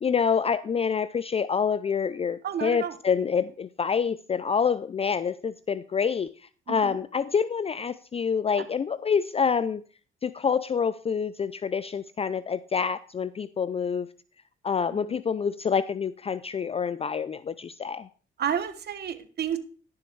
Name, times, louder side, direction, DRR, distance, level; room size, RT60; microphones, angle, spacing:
voice 1, 0.0-6.3 6.7-9.8 10.2-14.1 14.6-18.1, left 6 dB, 30° left, 15 dB, 0.4 m, -27 dB
voice 2, 2.4-3.0 6.7-7.0 8.5-8.6 15.1-15.2 18.4-19.6, right 8 dB, 55° right, 10 dB, 1.2 m, -31 dB
11.0 x 7.2 x 4.5 m, 0.40 s
cardioid pair, 90°, 20 cm